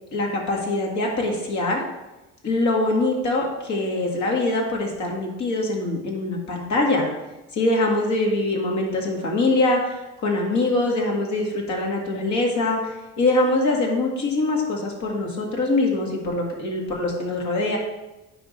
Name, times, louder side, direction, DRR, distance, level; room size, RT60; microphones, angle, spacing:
voice 1, 0.1-1.8 2.4-7.1 7.5-17.8, left 2 dB, 70° left, 0 dB, 2.1 m, -23 dB
9.9 x 3.8 x 5.3 m, 1.1 s
cardioid pair, 90°, 30 cm